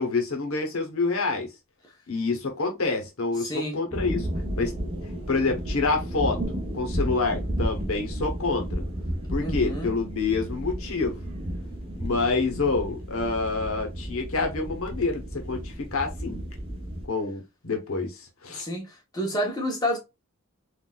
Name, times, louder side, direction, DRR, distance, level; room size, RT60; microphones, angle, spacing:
voice 1, 0.0-1.5 2.1-4.3 4.6-4.7 5.3-8.8 9.3-11.2 12.0-16.4 17.1-18.7, left 3 dB, 75° left, 0.9 m, -27 dB
voice 2, 3.4-3.8 9.4-9.9 18.5-20.0, equal, 15° left, 0.8 m, -29 dB
sound 1, 3.9-17.1, equal, 25° right, 0.6 m, -32 dB
3.8 x 2.4 x 2.3 m
head